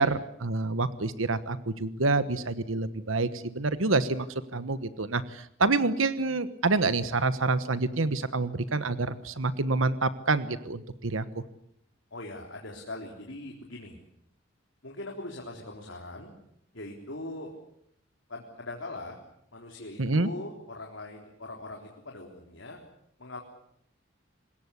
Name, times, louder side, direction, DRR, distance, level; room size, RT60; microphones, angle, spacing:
voice 1, 0.0-4.3 4.5-11.4 20.0-20.3, right 3 dB, 80° right, 13 dB, 1.3 m, -27 dB
voice 2, 12.1-14.0 14.8-16.3 16.7-17.5 18.3-19.2 19.5-22.8 23.2-23.4, left 2 dB, 70° left, 1 dB, 3.9 m, -41 dB
26.0 x 21.0 x 8.4 m, 0.72 s
head